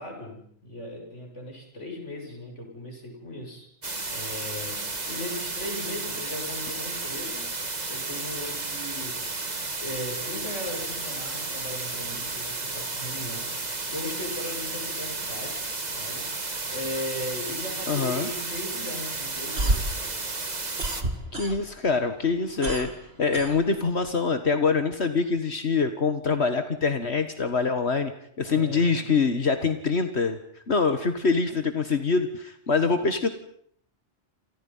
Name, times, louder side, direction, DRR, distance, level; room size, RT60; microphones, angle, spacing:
voice 1, 0.0-3.7 4.1-7.6 7.9-15.7 16.0-20.2 28.5-29.1, left 1 dB, 85° left, 2 dB, 7.3 m, -38 dB
sound 1, 3.8-21.0, right 3 dB, 35° right, 1.9 m, -33 dB
voice 2, 17.9-18.3 21.3-22.9 23.2-28.1 28.4-30.4 30.7-33.3, left 4 dB, 65° left, 8 dB, 2.0 m, -24 dB
sound 2, 19.4-21.9 22.2-24.1, right 2 dB, 60° right, 2.9 m, -30 dB
29.0 x 29.0 x 5.7 m, 0.65 s
omnidirectional pair, 1.2 m